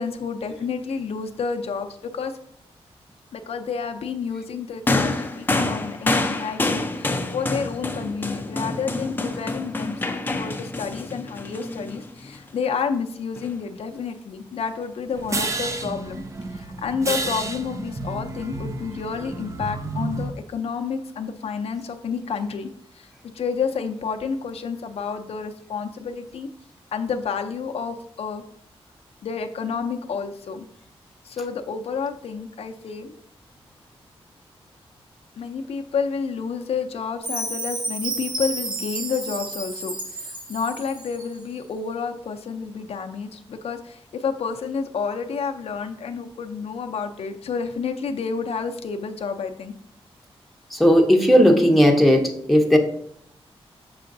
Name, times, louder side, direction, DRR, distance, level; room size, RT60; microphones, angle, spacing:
voice 1, 0.0-2.3 3.3-16.2 16.5-22.7 22.9-23.1 23.3-26.5 26.9-28.4 29.2-30.7 31.2-33.1 35.4-49.7, left 5 dB, 75° left, 5 dB, 0.5 m, -30 dB
sound 1, 4.9-12.4 13.4-13.5, left 2 dB, 20° left, 0.5 m, -27 dB
sound 2, 15.1-20.3, right 2 dB, 30° right, 0.6 m, -30 dB
Chime, 37.2-41.3, right 2 dB, 45° right, 1.1 m, -31 dB
voice 2, 50.7-52.8, equal, ahead, 1 dB, 0.9 m, -16 dB
6.7 x 5.6 x 2.6 m, 0.66 s
wide cardioid pair, 125°, 10 cm